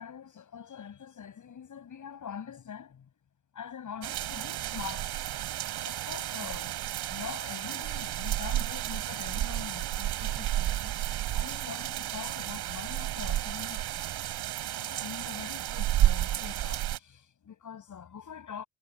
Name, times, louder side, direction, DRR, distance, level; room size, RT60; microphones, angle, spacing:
voice 1, 0.0-3.1 3.5-5.1 5.8-10.9 11.3-14.0 14.8-18.7, left 8 dB, 45° left, 7.7 m, -44 dB
sound 1, 4.0-17.0, right 13 dB, 70° right, 3.8 m, -32 dB
supercardioid pair, 80°, 41 cm